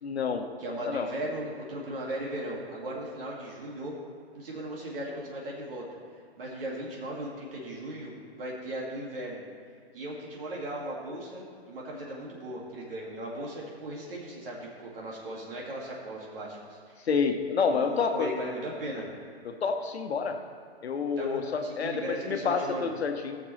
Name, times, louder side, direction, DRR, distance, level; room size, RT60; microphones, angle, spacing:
voice 1, 0.0-0.5 0.9-1.1 17.1-18.3 19.4-20.4 20.8-23.4, left 5 dB, 75° left, 5 dB, 1.2 m, -28 dB
voice 2, 0.6-4.0 4.3-5.8 6.4-9.4 9.9-17.1 17.7-19.1 21.2-22.9, right 1 dB, 60° right, -3 dB, 2.3 m, -37 dB
16.0 x 7.1 x 3.3 m, 2.2 s
hypercardioid pair, 150°, 32 cm